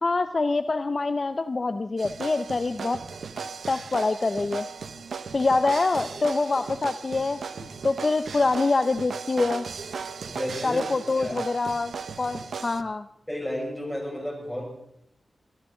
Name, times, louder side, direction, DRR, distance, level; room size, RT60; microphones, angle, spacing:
voice 1, 0.0-3.0 3.7-4.7 5.3-9.7 10.6-11.9 12.2-13.1, left 3 dB, 40° left, 10 dB, 0.5 m, -25 dB
sound 1, 2.0-12.8, right 5 dB, 90° right, 0.8 m, -37 dB
voice 2, 10.3-10.8 11.2-11.4 13.3-14.7, equal, 5° left, -1 dB, 5.9 m, -32 dB
24.5 x 15.0 x 3.8 m, 0.75 s
wide cardioid pair, 115°, 0 cm